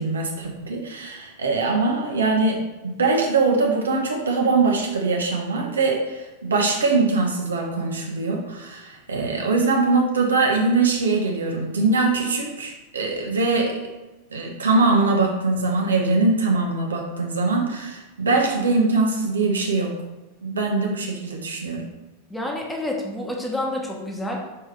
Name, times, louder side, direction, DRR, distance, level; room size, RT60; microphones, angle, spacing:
voice 1, 0.0-13.8 14.3-20.0 20.4-21.9, right 3 dB, 70° right, 1 dB, 1.1 m, -22 dB
voice 2, 22.3-24.5, left 1 dB, 5° left, -1 dB, 1.2 m, -28 dB
5.8 x 4.9 x 3.4 m, 1.1 s
figure-of-eight pair, 90°, 0 cm